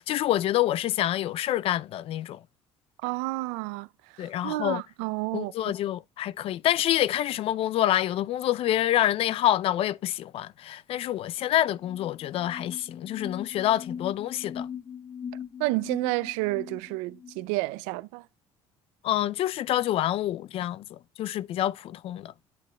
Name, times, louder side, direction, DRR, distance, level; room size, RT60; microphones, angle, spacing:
voice 1, 0.0-2.4 4.2-4.8 5.3-14.7 19.0-22.3, left 13 dB, 60° left, 0.4 m, -27 dB
voice 2, 3.0-3.9 4.2-5.5 15.6-18.2, right 21 dB, 85° right, 0.4 m, -30 dB
sound 1, 11.7-17.5, left 7 dB, 30° left, 2.3 m, -40 dB
9.2 x 9.1 x 2.2 m
supercardioid pair, 75°, 11 cm